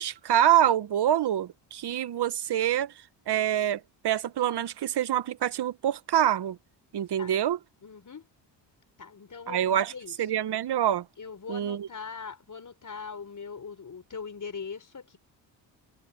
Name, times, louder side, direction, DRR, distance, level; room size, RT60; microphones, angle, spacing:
voice 1, 0.0-2.9 3.3-6.6 6.9-7.6 9.5-9.9 10.2-11.0 11.5-11.9, right 11 dB, 50° right, 1.5 m, -26 dB
voice 2, 7.8-8.3 9.0-10.2 11.2-15.2, left 5 dB, 35° left, 5.5 m, -41 dB
hypercardioid pair, 55°, 49 cm